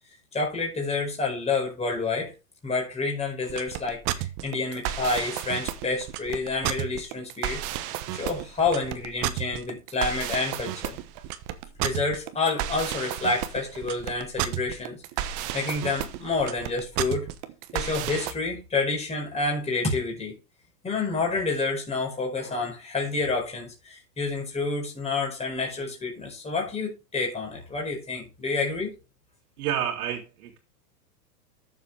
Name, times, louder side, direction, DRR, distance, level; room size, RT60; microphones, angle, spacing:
voice 1, 0.3-2.3 2.6-7.6 8.1-11.0 11.8-15.0 15.5-17.3 17.7-20.3 20.8-28.9, left 3 dB, 15° left, 5.0 m, -29 dB
sound 1, 3.4-18.3, right 12 dB, 40° right, 1.2 m, -32 dB
voice 2, 29.6-30.6, right 10 dB, 60° right, 2.6 m, -29 dB
13.5 x 7.3 x 3.4 m
hypercardioid pair, 130°, 49 cm